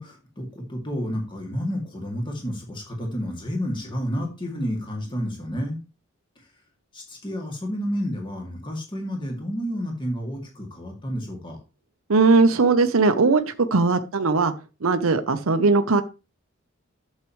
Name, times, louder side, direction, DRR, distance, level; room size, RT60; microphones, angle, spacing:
voice 1, 0.0-5.8 6.9-11.6, equal, 25° left, 1 dB, 2.3 m, -30 dB
voice 2, 12.1-13.4 13.7-14.5 14.8-16.0, right 4 dB, 80° right, 8 dB, 0.8 m, -19 dB
11.5 x 7.4 x 3.1 m, 0.30 s
head